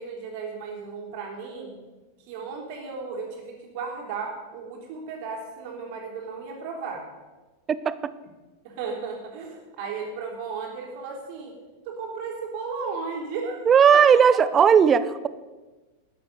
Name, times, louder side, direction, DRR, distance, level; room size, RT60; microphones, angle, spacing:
voice 1, 0.0-1.8 2.2-7.0 8.6-11.6 11.8-13.7 14.1-14.2, right 5 dB, 45° right, 1 dB, 3.5 m, -35 dB
voice 2, 13.7-15.3, right 7 dB, 25° right, 15 dB, 0.7 m, -17 dB
13.0 x 9.8 x 6.9 m, 1.2 s
figure-of-eight pair, 90°, 0 cm